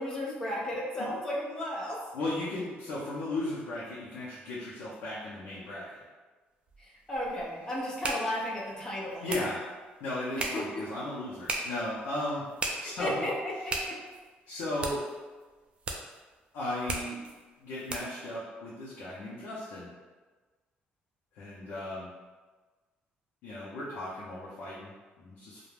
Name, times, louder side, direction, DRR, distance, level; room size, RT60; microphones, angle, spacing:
voice 1, 0.0-2.0 6.8-9.3 10.5-10.8 12.8-14.0, left 1 dB, 20° left, -4 dB, 0.6 m, -34 dB
voice 2, 2.1-6.0 9.2-9.6 10.0-12.4 12.8-13.3 14.5-15.0 16.5-17.2 17.6-19.9 21.3-22.1 23.4-25.6, left 1 dB, 85° left, -8 dB, 0.6 m, -36 dB
sound 1, 6.7-18.3, right 2 dB, 30° right, 0.3 m, -39 dB
2.4 x 2.2 x 3.2 m, 1.3 s
cardioid pair, 160°, 4 cm